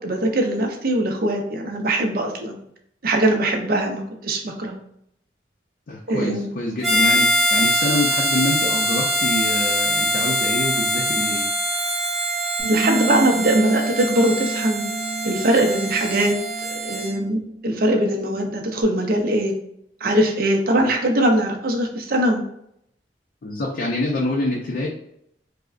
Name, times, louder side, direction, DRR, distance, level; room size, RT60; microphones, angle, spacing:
voice 1, 0.0-2.6 3.0-4.7 6.1-6.5 12.7-14.8 15.2-16.3 16.6-19.5 20.0-22.4, right 1 dB, 55° right, 3 dB, 0.6 m, -21 dB
voice 2, 5.9-11.4 20.8-20.9 23.4-24.9, left 1 dB, 55° left, -3 dB, 0.5 m, -26 dB
Harmonica, 6.8-17.1, equal, ahead, 0.8 m, -23 dB
Bass guitar, 12.6-18.8, right 2 dB, 20° right, 1.4 m, -30 dB
4.8 x 2.1 x 2.5 m, 0.72 s
head